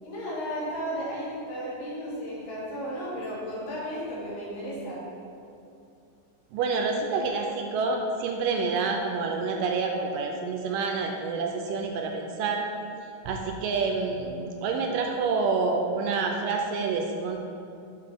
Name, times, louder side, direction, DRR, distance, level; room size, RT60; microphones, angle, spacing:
voice 1, 0.0-5.1, equal, 70° left, -7 dB, 3.4 m, -34 dB
voice 2, 6.5-12.7 13.2-17.4, right 4 dB, 80° right, 2 dB, 2.1 m, -28 dB
7.6 x 6.5 x 3.5 m, 2.6 s
omnidirectional pair, 4.1 m